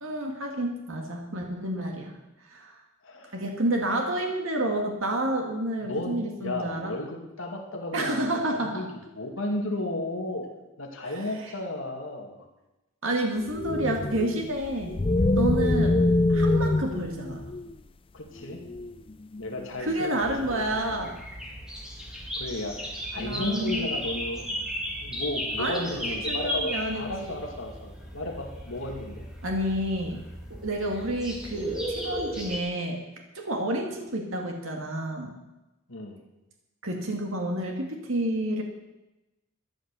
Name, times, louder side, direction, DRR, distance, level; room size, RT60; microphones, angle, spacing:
voice 1, 0.0-2.2 2.5-2.8 3.3-6.9 7.9-8.8 11.0-11.5 13.0-15.0 15.4-16.0 16.3-17.4 19.8-21.2 23.2-23.9 25.6-27.3 29.4-30.2 30.6-33.0 33.3-35.3 36.8-38.6, right 1 dB, 70° right, 2 dB, 2.1 m, -29 dB
voice 2, 3.0-3.4 5.8-10.4 10.8-12.5 18.1-18.6 19.4-21.0 22.4-24.6 25.0-29.3 35.9-36.2, left 1 dB, 65° left, 1 dB, 2.4 m, -34 dB
sound 1, 13.4-17.8 18.4-20.0, left 2 dB, 25° left, 0.4 m, -25 dB
sound 2, 20.2-32.6, equal, 5° right, 2.6 m, -35 dB
13.0 x 11.0 x 6.9 m, 0.98 s
head